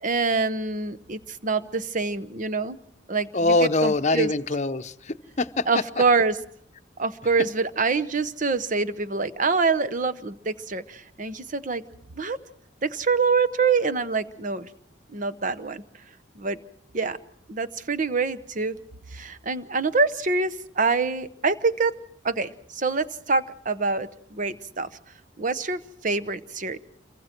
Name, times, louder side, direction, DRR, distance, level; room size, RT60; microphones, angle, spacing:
voice 1, 0.0-2.8 3.1-3.3 3.8-4.3 5.7-6.4 7.0-11.8 12.2-12.4 12.8-14.7 15.1-15.8 16.4-16.6 16.9-17.2 17.5-18.8 19.1-21.9 22.2-24.9 25.4-26.8, right 4 dB, 40° right, 13 dB, 0.9 m, -25 dB
voice 2, 3.3-5.7, left 2 dB, 40° left, 10 dB, 0.8 m, -23 dB
28.0 x 23.5 x 4.5 m, 0.67 s
head